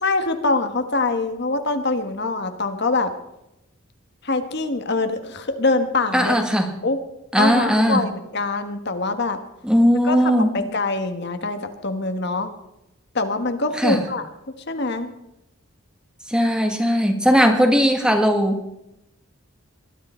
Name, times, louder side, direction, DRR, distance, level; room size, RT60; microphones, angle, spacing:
voice 1, 0.0-3.1 4.2-6.4 6.8-7.0 7.4-9.4 10.0-12.5 13.1-14.2 14.7-15.1, left 3 dB, 50° left, 8 dB, 1.3 m, -24 dB
voice 2, 6.1-6.7 7.3-8.1 9.6-10.7 13.8-14.0 16.3-18.6, equal, 5° right, 5 dB, 1.5 m, -18 dB
20.5 x 12.5 x 4.4 m, 0.86 s
head